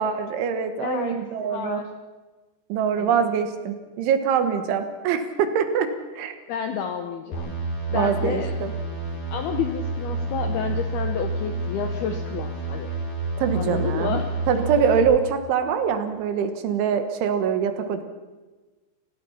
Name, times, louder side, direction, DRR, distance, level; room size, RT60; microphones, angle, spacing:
voice 1, 0.0-1.8 2.7-5.9 6.2-6.4 7.9-8.7 13.4-14.2 14.5-18.0, right 7 dB, 70° right, 9 dB, 3.6 m, -24 dB
voice 2, 0.8-1.8 3.0-3.2 6.5-7.5 7.9-8.5 9.3-12.9 13.5-14.3, left 8 dB, 75° left, 6 dB, 2.3 m, -30 dB
sound 1, 7.3-15.0, right 3 dB, 40° left, 6.6 m, -29 dB
29.5 x 16.5 x 5.8 m, 1.2 s
omnidirectional pair, 5.9 m